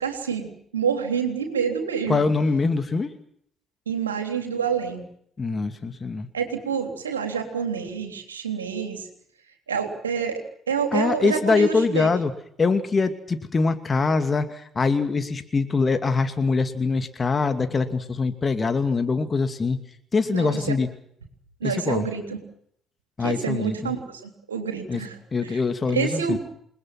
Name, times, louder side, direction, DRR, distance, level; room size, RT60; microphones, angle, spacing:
voice 1, 0.0-2.3 3.9-5.1 6.3-9.1 9.7-10.4 10.7-12.1 20.3-20.7 21.6-22.4 23.2-25.6 25.9-26.4, right 6 dB, 85° right, 5 dB, 3.5 m, -28 dB
voice 2, 2.1-3.1 5.4-6.3 10.9-12.3 12.6-19.8 20.1-20.9 21.6-22.1 23.2-23.9 24.9-25.0 25.3-26.4, left 4 dB, 30° left, 8 dB, 2.5 m, -23 dB
29.0 x 20.5 x 6.1 m, 0.67 s
figure-of-eight pair, 45°, 0 cm